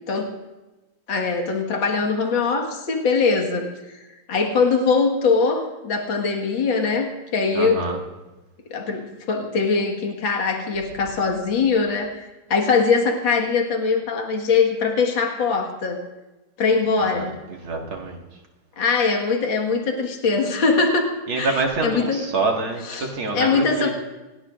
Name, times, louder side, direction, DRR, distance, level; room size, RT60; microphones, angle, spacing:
voice 1, 1.1-3.7 4.3-7.9 8.7-12.2 12.5-16.0 16.6-17.4 18.8-21.1 21.4-22.3 22.8-23.9, left 4 dB, 70° left, 1 dB, 2.5 m, -22 dB
voice 2, 7.5-8.0 17.1-17.3 17.6-18.2 21.3-23.9, right 3 dB, 90° right, 1 dB, 2.8 m, -26 dB
26.5 x 18.5 x 2.5 m, 1.1 s
omnidirectional pair, 2.2 m